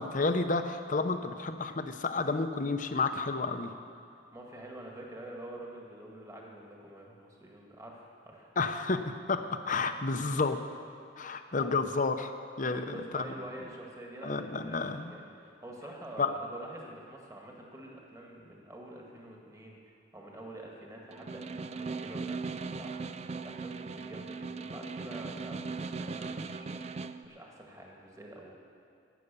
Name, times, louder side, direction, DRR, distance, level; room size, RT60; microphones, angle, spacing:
voice 1, 0.0-3.7 8.6-9.0 9.3-10.6 11.2-13.2 14.2-15.2 16.2-16.3, left 3 dB, 45° left, 8 dB, 0.7 m, -31 dB
voice 2, 4.3-8.5 11.5-11.8 12.7-23.0 23.4-28.6, right 1 dB, 20° right, -1 dB, 1.8 m, -47 dB
Snare drum, 21.1-27.2, right 4 dB, 35° right, 0.4 m, -38 dB
15.0 x 9.4 x 6.9 m, 2.4 s
head